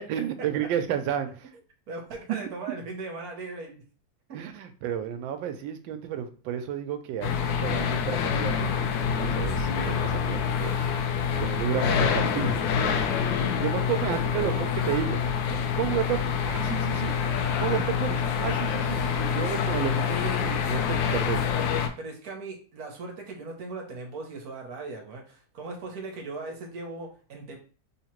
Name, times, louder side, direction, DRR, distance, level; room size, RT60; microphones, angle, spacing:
voice 1, 0.0-1.5 4.3-8.9 9.2-10.7 11.4-12.6 13.6-17.1 17.6-21.4, right 9 dB, 90° right, 8 dB, 1.3 m, -32 dB
voice 2, 1.9-3.8 4.3-4.4 14.1-14.8 22.0-27.6, right 3 dB, 60° right, 1 dB, 1.2 m, -38 dB
sound 1, 7.2-21.9, left 7 dB, 85° left, 1.3 m, -26 dB
3.6 x 2.8 x 2.9 m, 0.39 s
omnidirectional pair, 2.0 m